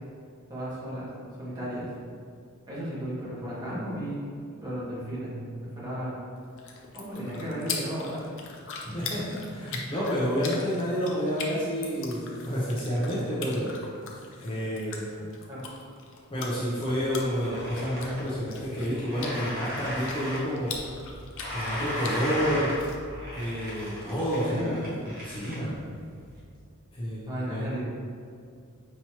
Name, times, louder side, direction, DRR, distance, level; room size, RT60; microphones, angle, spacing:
voice 1, 0.5-1.1 1.4-1.9 2.7-4.2 4.6-5.3 5.6-6.1 6.9-8.4 15.5-15.6 24.4-24.8 27.3-27.8, equal, 20° right, -9 dB, 1.4 m, -34 dB
sound 1, 6.4-23.0, left 4 dB, 60° left, 0.6 m, -41 dB
voice 2, 8.8-13.7 14.4-15.1 16.3-20.7 21.5-22.7 23.3-24.9 25.2-25.8 26.9-27.7, equal, 25° left, -8 dB, 0.7 m, -29 dB
sound 2, 17.0-26.4, left 1 dB, 45° right, 1.2 m, -37 dB
5.7 x 3.0 x 2.9 m, 2.2 s
head